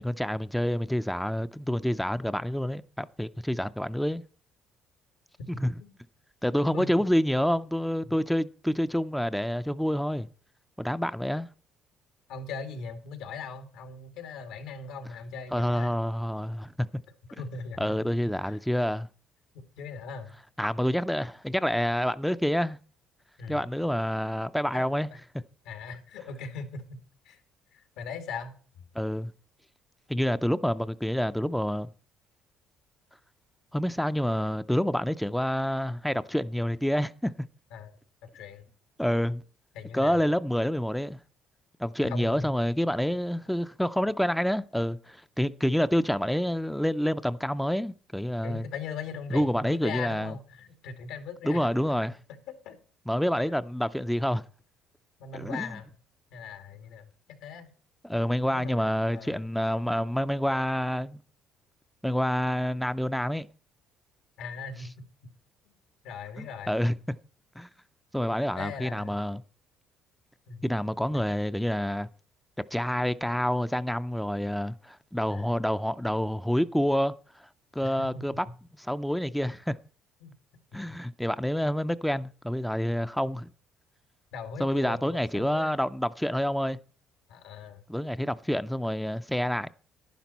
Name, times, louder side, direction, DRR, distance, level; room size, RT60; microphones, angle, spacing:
voice 1, 0.0-4.2 5.6-5.7 6.4-10.3 10.8-11.5 15.5-16.9 17.8-19.1 20.6-22.8 23.5-25.1 28.9-29.3 30.1-31.9 33.7-37.3 39.0-39.4 39.9-41.2 41.8-48.7 49.3-50.4 51.4-52.2 53.1-54.4 55.3-55.8 58.0-61.2 62.0-63.5 66.4-67.0 67.6-67.7 68.1-69.4 70.6-72.1 72.7-78.5 78.8-79.8 80.7-83.5 84.6-86.8 87.9-89.7, equal, ahead, 0.4 m, -28 dB
voice 2, 12.3-16.0 17.4-17.9 18.4-18.6 19.8-20.3 23.4-23.6 24.7-25.2 25.6-27.0 27.2-27.4 27.7-28.8 37.7-38.0 38.3-38.7 39.7-40.2 42.0-42.5 48.4-51.7 52.5-52.8 55.2-55.9 56.3-57.1 57.4-57.7 58.5-59.5 64.4-64.9 66.0-66.7 68.6-69.2 70.5-70.7 71.1-71.3 75.3-75.4 77.8-78.5 80.2-80.3 80.9-81.0 84.3-85.7 87.3-87.8, left 5 dB, 90° left, 2.3 m, -40 dB
11.0 x 10.5 x 4.1 m
cardioid pair, 125°, 0 cm